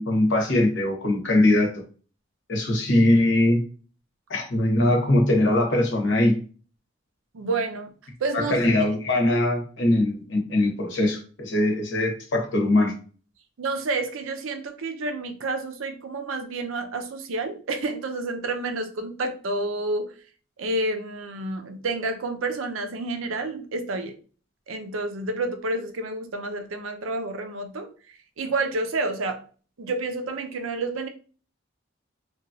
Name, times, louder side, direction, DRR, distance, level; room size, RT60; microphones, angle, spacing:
voice 1, 0.0-1.8 2.5-3.6 4.3-6.4 8.5-12.9, left 1 dB, 65° left, 3 dB, 0.8 m, -21 dB
voice 2, 7.3-7.9 8.2-8.9 13.6-20.1 20.6-24.1 24.7-27.9 28.4-29.4 29.8-31.1, right 2 dB, 90° right, 7 dB, 0.5 m, -29 dB
2.9 x 2.3 x 2.6 m, 0.39 s
head